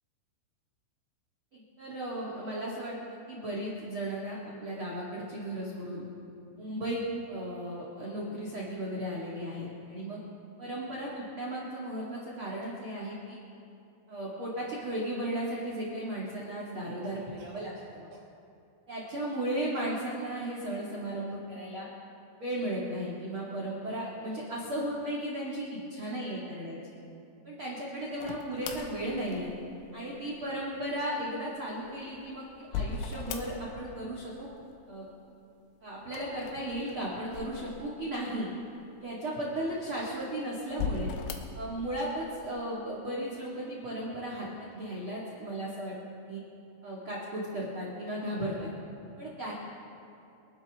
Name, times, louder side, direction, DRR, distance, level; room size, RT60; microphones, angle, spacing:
voice 1, 1.5-6.1 6.6-7.0 7.3-10.2 10.6-13.4 14.1-18.1 18.9-21.9 22.4-26.8 27.4-29.5 29.9-34.5 34.9-35.1 35.8-38.5 39.0-41.1 41.5-45.9 46.3-46.4 46.8-48.7 49.2-49.5, right 1 dB, 45° right, -5 dB, 1.8 m, -35 dB
Cough, 15.2-15.5 17.0-18.3, right 3 dB, 80° right, 5.3 m, -55 dB
sound 1, 28.2-29.9 31.7-33.9 34.2-34.9 36.0-38.2 38.8-38.9 39.7-40.2 40.7-41.7, left 6 dB, 80° left, 3.4 m, -38 dB
27.5 x 12.0 x 3.6 m, 2.6 s
omnidirectional pair, 5.5 m